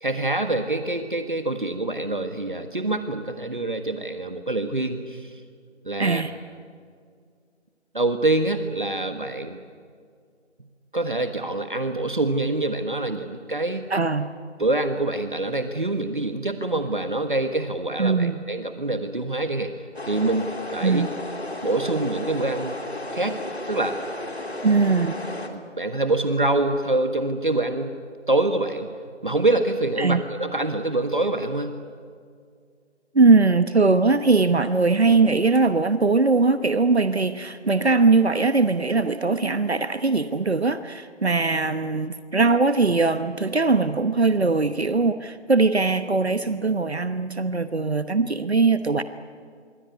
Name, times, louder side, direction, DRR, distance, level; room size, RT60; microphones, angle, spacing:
voice 1, 0.0-5.4 5.8-6.2 7.9-9.6 10.9-13.8 14.6-21.0 21.6-22.8 23.1-23.4 23.7-23.9 25.5-27.9 28.3-28.9 29.2-31.7, right 2 dB, 45° right, 7 dB, 1.4 m, -25 dB
voice 2, 6.0-6.3 13.9-14.3 18.0-18.4 20.8-21.1 24.6-25.1 30.0-30.2 33.1-49.0, right 3 dB, 65° right, 11 dB, 1.2 m, -20 dB
sound 1, 19.9-25.5, left 1 dB, 65° left, 3.6 m, -33 dB
25.5 x 24.0 x 9.5 m, 2.1 s
figure-of-eight pair, 175°, 35 cm